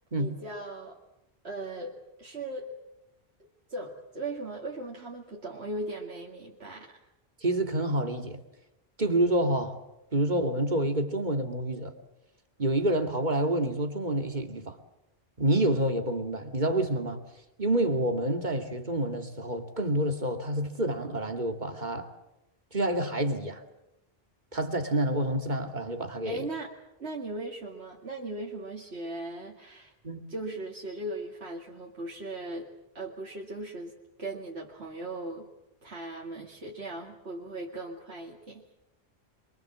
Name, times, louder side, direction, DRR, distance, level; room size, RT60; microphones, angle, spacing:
voice 1, 0.2-1.0 1.4-2.8 3.4-7.0 26.2-26.7 27.0-29.9 30.3-33.9 34.2-35.5 35.8-38.6, right 2 dB, 85° right, 2.6 m, -38 dB
voice 2, 7.4-8.4 9.0-9.8 10.1-11.9 12.6-14.8 15.4-17.2 17.6-22.1 22.7-23.6 24.5-26.5 30.0-30.3, right 1 dB, 45° right, 2.6 m, -28 dB
27.5 x 24.0 x 7.5 m
omnidirectional pair, 1.1 m